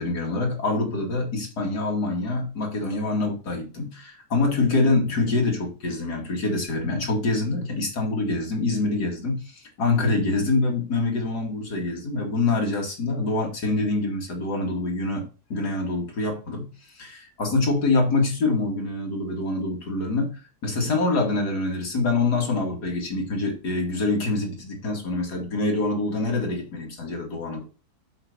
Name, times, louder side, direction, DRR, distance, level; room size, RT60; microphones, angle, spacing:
voice 1, 0.0-15.2 15.5-27.6, left 3 dB, 80° left, 1 dB, 2.9 m, -25 dB
7.9 x 5.3 x 5.3 m, 0.35 s
omnidirectional pair, 1.7 m